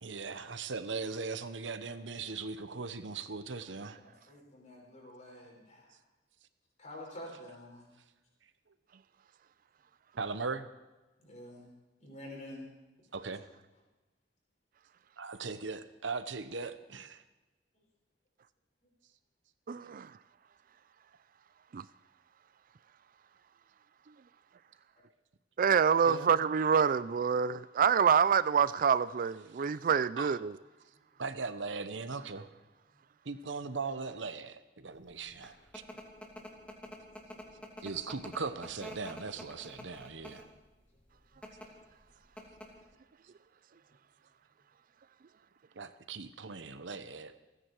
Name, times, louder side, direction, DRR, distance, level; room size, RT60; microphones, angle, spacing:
voice 1, 0.0-4.0 10.2-10.7 13.1-13.5 15.2-17.2 26.1-26.3 30.2-30.4 31.2-32.5 33.3-35.8 37.8-40.5 45.8-47.4, right 4 dB, 90° right, 1.0 m, -39 dB
voice 2, 3.9-6.0 6.8-7.9 11.2-11.7 12.0-12.7 17.7-17.8 31.1-31.2, left 1 dB, 40° left, 5.6 m, -48 dB
voice 3, 19.7-20.1 21.7-21.8 25.6-30.6, right 7 dB, 50° right, 0.4 m, -26 dB
sound 1, 35.1-40.6 41.3-41.7 42.0-42.1 42.4-42.9, left 1 dB, 5° left, 2.7 m, -47 dB
28.5 x 10.0 x 4.7 m
head